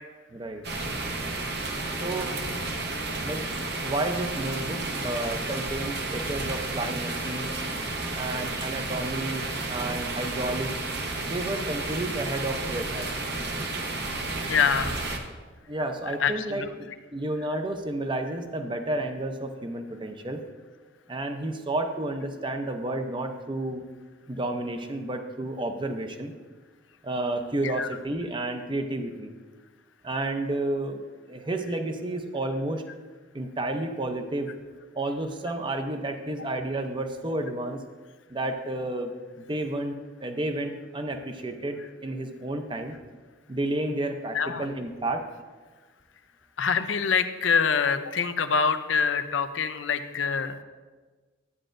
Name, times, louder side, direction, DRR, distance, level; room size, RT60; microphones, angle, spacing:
voice 1, 0.3-0.6 2.0-2.3 3.2-3.4 3.8-7.5 8.2-10.7 11.3-13.1 15.7-20.4 21.1-23.8 24.3-26.3 27.0-29.3 30.0-31.0 31.3-32.8 33.3-34.5 34.9-37.8 38.3-39.1 39.4-40.0 40.2-43.0 43.5-45.2, right 2 dB, 25° right, 6 dB, 0.7 m, -31 dB
sound 1, 0.6-15.2, right 2 dB, 60° right, 1.0 m, -32 dB
voice 2, 14.5-14.9 16.2-16.7 27.6-27.9 44.3-44.7 46.6-50.6, left 6 dB, 75° left, 10 dB, 0.6 m, -25 dB
12.0 x 8.8 x 2.6 m, 1.4 s
head